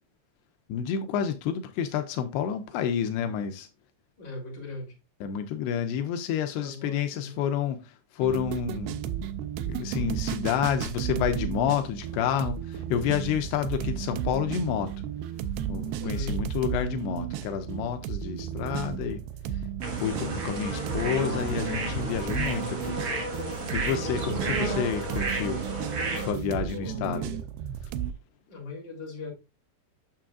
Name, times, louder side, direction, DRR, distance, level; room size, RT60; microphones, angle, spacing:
voice 1, 0.7-3.7 5.2-7.8 8.1-9.0 9.7-14.9 15.7-19.2 19.8-23.0 23.7-25.6 26.2-27.3, left 8 dB, 85° left, 2.8 m, -29 dB
voice 2, 4.2-5.0 6.5-7.4 16.0-16.4 26.6-27.4 28.5-29.3, left 3 dB, 30° left, 3.6 m, -39 dB
sound 1, 8.2-28.1, right 10 dB, 85° right, 2.7 m, -34 dB
sound 2, 19.8-26.3, right 2 dB, 45° right, 2.6 m, -32 dB
8.8 x 6.7 x 2.4 m
omnidirectional pair, 4.7 m